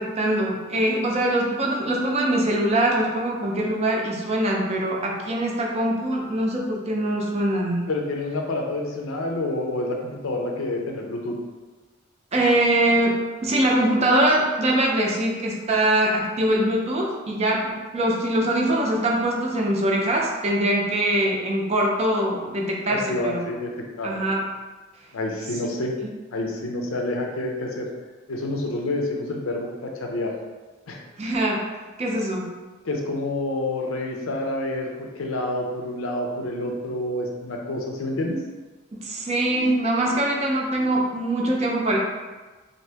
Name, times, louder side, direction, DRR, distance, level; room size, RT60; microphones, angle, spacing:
voice 1, 0.0-7.8 12.3-23.5 24.0-24.4 31.2-31.6 32.0-32.5 39.0-42.0, right 1 dB, 30° right, -1 dB, 0.5 m, -23 dB
voice 2, 7.9-11.4 22.9-24.2 25.1-26.0 26.3-27.9 28.3-30.3 30.9-31.0 32.8-38.4, left 2 dB, 75° left, 1 dB, 0.5 m, -28 dB
2.8 x 2.6 x 3.3 m, 1.3 s
head